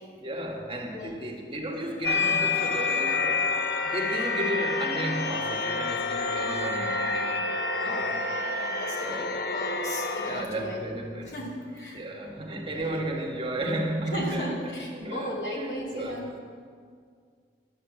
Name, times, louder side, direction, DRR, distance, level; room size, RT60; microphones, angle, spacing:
voice 1, 0.2-3.5 3.8-7.5 7.8-8.1 9.0-9.4 10.2-11.4 11.9-16.2, right 1 dB, 30° right, 0 dB, 1.5 m, -33 dB
sound 1, 2.0-10.5, left 3 dB, 60° left, 0.8 m, -28 dB
voice 2, 7.7-8.2 8.6-10.8 11.2-12.0 12.3-12.4 12.7-12.9 14.1-16.3, equal, 85° left, -3 dB, 3.0 m, -37 dB
11.0 x 8.9 x 7.6 m, 2.1 s
head